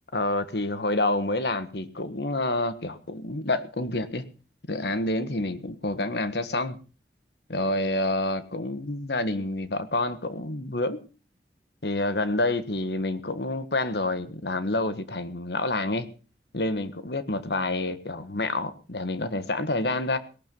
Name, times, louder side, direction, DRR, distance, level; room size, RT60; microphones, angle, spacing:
voice 1, 0.1-4.2 4.7-6.8 7.5-11.0 11.8-16.1 16.5-20.2, left 2 dB, 65° left, 12 dB, 1.5 m, -28 dB
18.5 x 12.0 x 5.4 m, 0.37 s
head